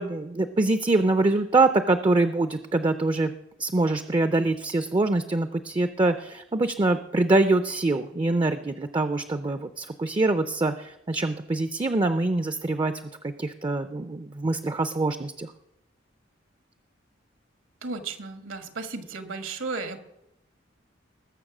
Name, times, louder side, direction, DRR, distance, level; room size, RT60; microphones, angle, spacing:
voice 1, 0.0-3.3 3.6-12.9 13.2-15.5, right 2 dB, 25° right, 10 dB, 0.5 m, -24 dB
voice 2, 17.8-20.0, right 3 dB, 75° right, 7 dB, 1.5 m, -34 dB
20.0 x 6.8 x 6.0 m, 0.87 s
head